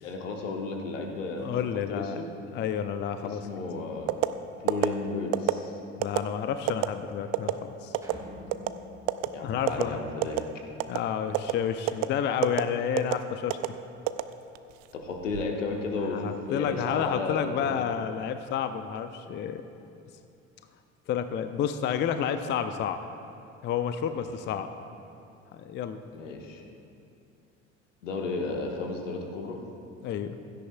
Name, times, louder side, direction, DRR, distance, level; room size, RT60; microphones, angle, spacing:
voice 1, 0.0-1.5 1.9-2.2 3.4-4.1 4.6-5.8 9.3-10.4 14.9-17.7 24.0-24.2 26.1-26.6 28.0-29.6, left 3 dB, 70° left, 2 dB, 1.3 m, -33 dB
voice 2, 1.4-2.2 2.5-3.5 6.0-7.9 9.4-10.1 10.9-13.6 16.1-19.6 21.1-23.0 23.6-24.7 25.5-26.0 30.0-30.4, left 8 dB, 30° left, 9 dB, 0.5 m, -30 dB
sound 1, 4.1-4.3 4.7-4.9 5.3-5.6 6.0-6.2 6.7-6.9 7.3-7.5 7.9-8.1 8.5-8.7 9.1-9.3 9.7-9.8 10.2-10.5 10.8-11.0 11.3-11.5 11.9-12.1 12.4-12.6 13.0-13.2 13.5-13.7 14.1-14.7 15.1-15.4, right 21 dB, 45° right, 0.5 m, -25 dB
sound 2, 8.0-10.5, equal, 10° right, 2.0 m, -47 dB
16.0 x 12.5 x 2.2 m, 2.6 s
figure-of-eight pair, 60°, 38 cm